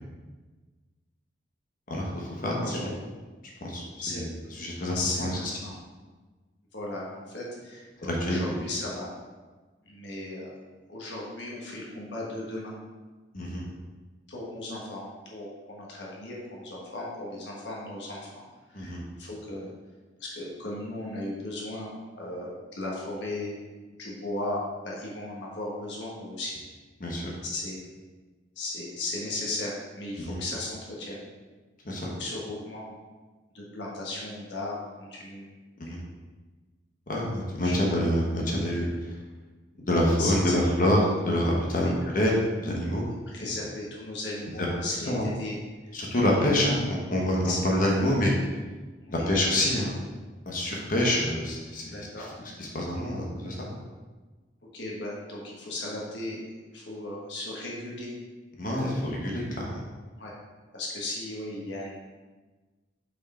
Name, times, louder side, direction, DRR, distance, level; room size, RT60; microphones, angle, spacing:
voice 1, 1.9-2.9 3.6-4.3 4.6-5.3 8.0-8.4 13.3-13.6 18.7-19.0 27.0-27.3 30.2-30.4 31.8-32.1 35.8-36.0 37.1-38.9 39.9-43.1 43.4-43.5 44.6-44.7 45.1-45.3 45.9-48.3 49.1-50.0 50.5-53.8 58.6-59.8, left 1 dB, 50° left, -2 dB, 1.1 m, -27 dB
voice 2, 4.9-5.7 6.7-9.1 9.8-10.5 10.9-12.7 14.3-19.7 20.2-23.5 24.0-26.6 27.4-27.8 28.5-31.2 32.0-32.9 33.5-35.5 37.6-37.8 40.2-40.5 41.7-41.9 43.3-45.6 46.3-46.5 47.4-47.6 49.0-49.3 51.8-52.3 54.6-56.4 56.7-58.1 60.2-60.3 60.7-61.9, left 2 dB, 75° left, -4 dB, 1.4 m, -36 dB
5.7 x 4.7 x 4.3 m, 1.3 s
head